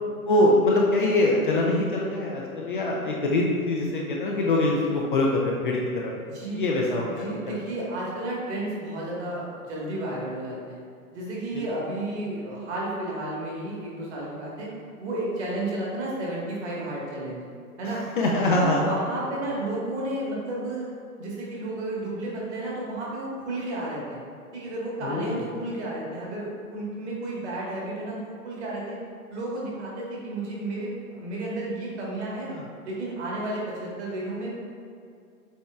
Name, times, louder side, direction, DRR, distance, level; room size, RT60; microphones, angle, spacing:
voice 1, 0.3-5.8 6.0-6.1 6.5-7.2 18.2-18.8 25.0-25.4 32.5-32.6, left 2 dB, 35° left, -2 dB, 0.4 m, -23 dB
voice 2, 6.2-6.7 7.1-10.8 11.1-14.7 15.0-17.4 17.8-18.0 18.5-20.9 21.2-24.2 24.5-29.0 29.3-32.5 32.8-34.5, right 1 dB, 45° right, -5 dB, 1.5 m, -32 dB
7.1 x 3.1 x 2.3 m, 2.4 s
figure-of-eight pair, 110°, 45 cm